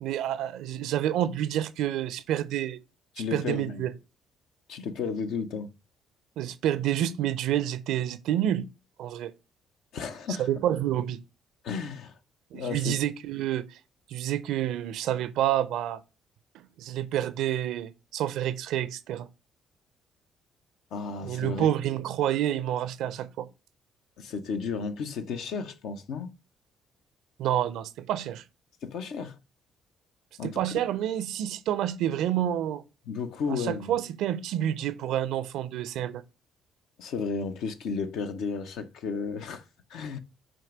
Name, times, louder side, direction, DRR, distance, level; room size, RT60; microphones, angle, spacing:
voice 1, 0.0-2.8 3.3-3.9 6.4-8.7 9.0-9.3 10.4-11.2 12.5-13.8 14.1-16.0 16.5-19.3 21.2-23.5 27.4-28.4 30.4-32.8 33.5-36.2, right 11 dB, 70° right, 0.4 m, -28 dB
voice 2, 3.2-3.8 4.7-5.7 9.9-10.5 11.6-12.2 12.5-13.0 20.9-21.7 24.2-26.3 28.8-29.4 30.4-30.6 33.1-33.9 37.0-39.6 39.9-40.2, left 5 dB, 65° left, 0.6 m, -33 dB
7.4 x 2.6 x 4.9 m
hypercardioid pair, 50°, 0 cm